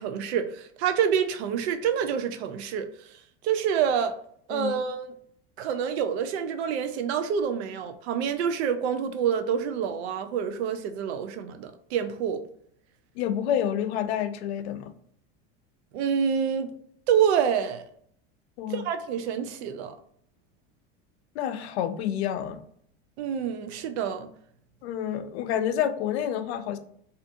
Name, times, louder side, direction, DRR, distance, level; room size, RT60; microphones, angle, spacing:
voice 1, 0.0-4.2 4.5-5.1 5.6-12.4 15.9-16.7 17.1-17.9 18.7-20.0 23.2-24.3, right 8 dB, 90° right, 0.5 m, -27 dB
voice 2, 4.5-4.8 13.2-14.9 18.6-18.8 21.4-22.6 24.8-26.8, left 10 dB, 85° left, 0.5 m, -28 dB
2.6 x 2.4 x 2.5 m
supercardioid pair, 165°, 31 cm